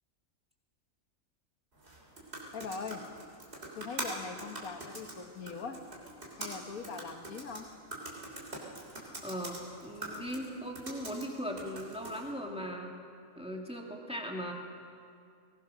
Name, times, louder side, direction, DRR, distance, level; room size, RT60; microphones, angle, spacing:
sound 1, 1.8-12.3, right 1 dB, 45° right, 3.7 m, -44 dB
voice 1, 2.5-3.0 3.8-5.8 6.4-7.7, left 5 dB, 85° left, 5 dB, 1.8 m, -41 dB
voice 2, 9.2-13.0 13.4-14.5, equal, 5° right, 0 dB, 2.2 m, -39 dB
21.5 x 19.5 x 6.4 m, 2.3 s
omnidirectional pair, 1.4 m